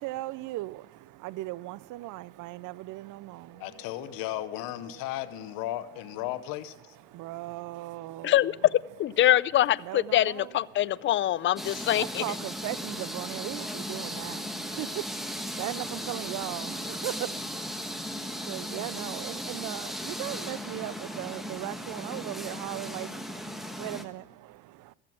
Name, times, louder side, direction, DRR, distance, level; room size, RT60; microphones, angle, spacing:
voice 1, 0.0-4.2 7.0-8.5 9.8-11.5 11.8-24.9, right 17 dB, 65° right, 0.5 m, -38 dB
sound 1, 3.5-14.9, equal, 25° right, 3.4 m, -58 dB
voice 2, 3.6-7.0, left 14 dB, 80° left, 0.9 m, -35 dB
voice 3, 8.2-12.2, left 13 dB, 35° left, 0.4 m, -24 dB
sound 2, 11.6-24.0, equal, ahead, 1.2 m, -37 dB
14.0 x 7.5 x 6.1 m
supercardioid pair, 95°, 34 cm